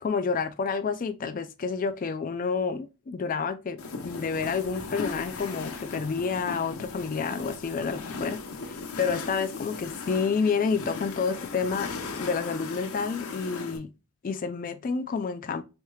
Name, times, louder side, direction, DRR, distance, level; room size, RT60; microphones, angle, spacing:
voice 1, 0.0-3.8 4.0-8.4 8.6-11.9 12.2-13.9 14.2-15.6, left 5 dB, 40° left, 0.3 m, -29 dB
sound 1, 3.8-13.8, left 4 dB, 80° left, 0.9 m, -37 dB
4.3 x 3.2 x 2.2 m
head